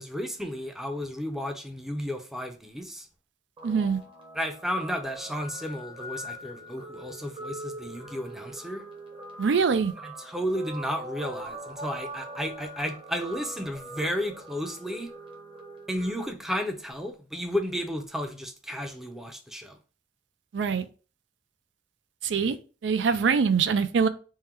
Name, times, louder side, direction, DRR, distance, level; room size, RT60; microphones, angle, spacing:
voice 1, 0.0-3.1 4.3-8.8 10.0-15.1 15.9-19.8, equal, ahead, 0.5 m, -33 dB
Guitar, 3.6-16.3, right 1 dB, 30° right, 0.8 m, -42 dB
voice 2, 3.6-4.0 9.4-9.9 20.5-20.8 22.2-22.6 22.8-24.1, right 5 dB, 85° right, 0.4 m, -23 dB
3.6 x 2.1 x 4.4 m
head